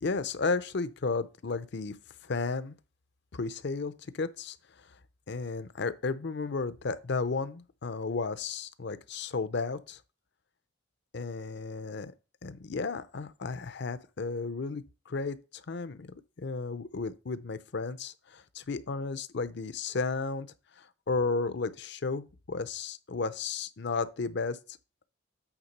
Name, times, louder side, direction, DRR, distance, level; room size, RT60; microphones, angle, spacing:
voice 1, 0.0-2.0 2.2-2.8 3.3-4.6 5.3-10.0 11.1-12.1 12.4-20.5 20.8-24.6, left 4 dB, 60° left, 0.6 m, -33 dB
8.8 x 3.6 x 5.4 m
head